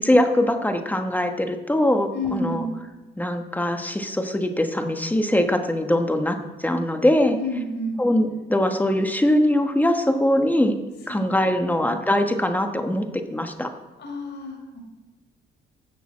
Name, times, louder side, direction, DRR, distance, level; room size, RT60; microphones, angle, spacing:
voice 1, 0.0-2.6 3.2-7.4 8.0-10.8 11.1-13.7, left 1 dB, 10° left, 6 dB, 1.2 m, -22 dB
voice 2, 2.1-2.7 7.3-8.0 11.1-11.3 11.6-11.8 14.0-14.8, left 1 dB, 60° left, 1 dB, 4.2 m, -30 dB
11.0 x 6.8 x 7.4 m, 1.1 s
cardioid pair, 90°, 20 cm